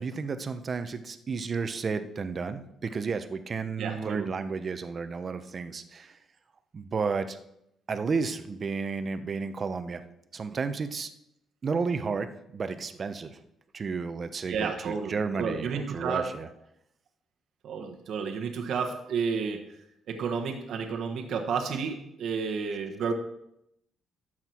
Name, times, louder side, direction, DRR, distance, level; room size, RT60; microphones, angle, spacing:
voice 1, 0.0-6.2 6.7-7.4 7.9-10.0 10.3-11.1 11.6-13.4 13.7-16.5, right 5 dB, 40° right, 10 dB, 0.9 m, -32 dB
voice 2, 3.8-4.3 14.5-16.3 17.6-19.6 20.1-23.1, right 5 dB, 70° right, 3 dB, 1.3 m, -31 dB
12.5 x 7.6 x 4.5 m, 0.80 s
cardioid pair, 90°, 0 cm